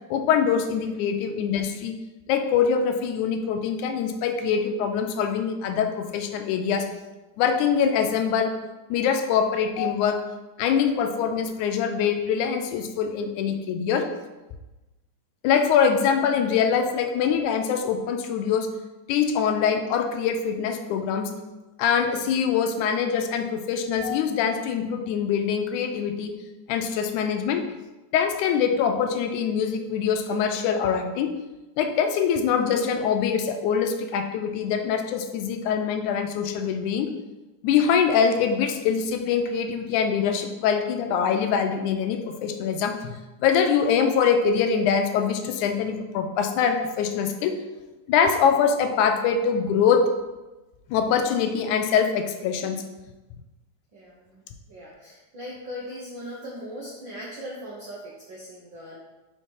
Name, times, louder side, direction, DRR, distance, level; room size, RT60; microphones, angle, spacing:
voice 1, 0.1-2.0 2.3-6.9 7.4-8.5 8.9-10.2 10.6-14.1 15.4-18.7 19.1-21.3 21.8-26.3 26.7-27.7 28.1-31.3 31.8-37.1 37.6-43.2 43.4-47.6 48.1-50.0 50.9-52.8, left 7 dB, 80° left, 6 dB, 2.0 m, -23 dB
voice 2, 53.9-54.4 54.7-59.0, equal, 75° right, -5 dB, 1.0 m, -39 dB
4.9 x 4.5 x 4.6 m, 1.1 s
omnidirectional pair, 3.5 m